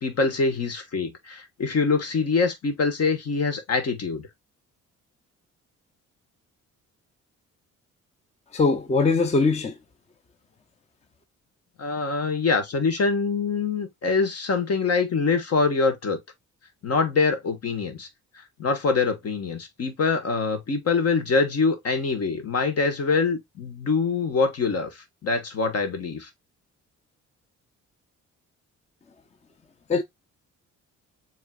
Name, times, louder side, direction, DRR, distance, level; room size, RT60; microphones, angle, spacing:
voice 1, 0.0-4.3 11.8-16.2 16.8-18.1 18.6-26.3, left 4 dB, 55° left, 1.5 m, -24 dB
voice 2, 8.5-9.7 29.9-30.0, left 4 dB, 20° left, 0.6 m, -21 dB
7.1 x 3.0 x 2.3 m
cardioid pair, 90°, 30 cm